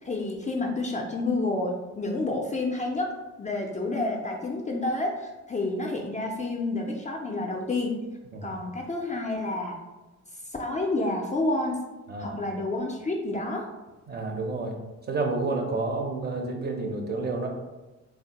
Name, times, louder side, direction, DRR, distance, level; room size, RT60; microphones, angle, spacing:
voice 1, 0.0-3.1 3.4-7.9 8.4-9.8 10.6-11.8 12.2-13.7, left 2 dB, 25° left, 0 dB, 0.3 m, -29 dB
voice 2, 12.1-12.4 14.1-14.8 15.1-17.5, right 3 dB, 35° right, 2 dB, 0.5 m, -30 dB
3.2 x 2.1 x 2.8 m, 1.1 s
cardioid pair, 105°, 30 cm